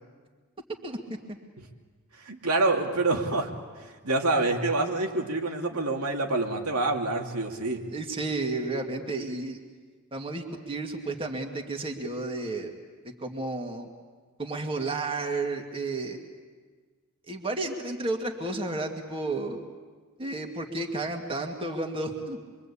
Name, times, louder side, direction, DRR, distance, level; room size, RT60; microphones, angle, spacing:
voice 1, 2.2-3.5 4.0-7.8, right 2 dB, 90° right, 2 dB, 2.7 m, -26 dB
voice 2, 7.9-9.6 10.1-12.7 13.0-13.9 14.4-16.2 17.3-19.6 20.2-22.4, right 2 dB, 25° right, 2 dB, 2.1 m, -32 dB
26.5 x 23.5 x 8.5 m, 1.5 s
head